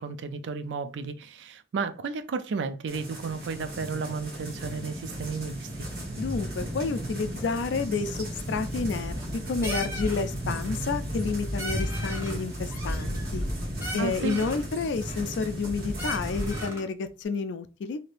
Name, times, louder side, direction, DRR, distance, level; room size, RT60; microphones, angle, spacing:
voice 1, 0.0-5.9 14.0-14.4, right 4 dB, 75° right, 0.4 m, -33 dB
sound 1, 2.9-16.7, equal, 50° right, 1.1 m, -34 dB
voice 2, 6.2-13.4 13.9-18.0, left 4 dB, 75° left, 0.3 m, -30 dB
sound 2, 9.1-9.4 9.6-10.2 10.5-10.9 11.2-11.3 11.6-12.4 12.7-13.5 13.8-14.6 15.1-15.7 16.0-16.9, equal, 15° right, 0.9 m, -38 dB
3.2 x 2.7 x 2.5 m
head